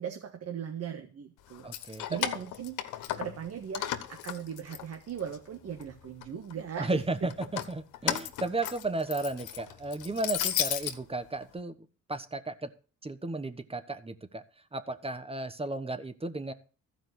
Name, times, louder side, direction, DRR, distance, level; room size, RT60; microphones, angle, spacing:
voice 1, 0.0-7.3, right 8 dB, 55° right, 4 dB, 1.6 m, -39 dB
Keys jangling, 1.5-3.5 3.7-5.4 5.8-6.5 7.3-11.0, left 11 dB, 90° left, 1.2 m, -34 dB
voice 2, 1.6-2.2 6.8-12.7 13.0-14.4 14.7-16.5, right 2 dB, 20° right, 11 dB, 1.2 m, -34 dB
14.0 x 5.1 x 7.8 m, 0.38 s
cardioid pair, 90°, 30 cm